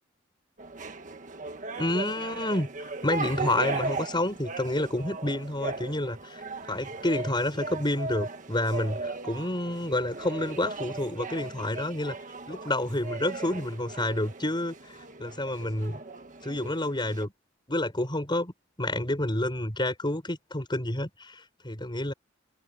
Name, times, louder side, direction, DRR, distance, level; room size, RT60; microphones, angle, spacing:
sound 1, 0.6-17.3, right 3 dB, 40° right, 1.6 m, -37 dB
voice 1, 1.8-6.4 6.7-12.1 12.5-16.0 16.4-17.3 17.7-18.5 18.8-22.1, left 1 dB, 25° left, 6.6 m, -29 dB
open air
head